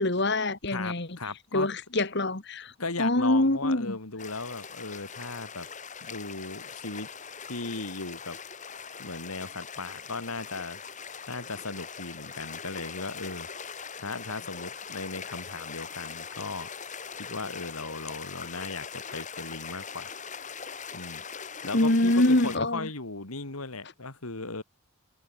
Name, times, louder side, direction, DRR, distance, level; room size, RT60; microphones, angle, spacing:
voice 1, 0.0-1.1 1.5-2.7 3.0-4.0 21.7-22.9, left 1 dB, 50° left, 2.0 m, -24 dB
voice 2, 0.7-1.7 2.8-5.7 6.0-7.1 7.4-8.4 9.0-10.8 11.3-13.7 14.0-16.7 17.2-20.1 20.9-21.2 21.6-24.6, left 3 dB, 85° left, 2.8 m, -37 dB
sound 1, 4.2-22.6, left 6 dB, 35° left, 3.1 m, -41 dB
head